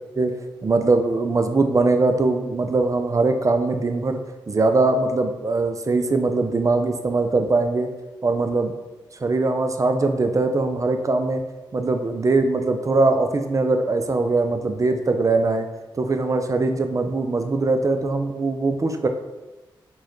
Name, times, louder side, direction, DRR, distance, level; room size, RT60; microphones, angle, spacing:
voice 1, 0.2-7.9 8.2-8.7 9.2-11.4 11.7-15.7 15.9-19.1, right 3 dB, 35° right, 6 dB, 0.4 m, -21 dB
4.3 x 2.2 x 3.0 m, 1.1 s
supercardioid pair, 40°, 9 cm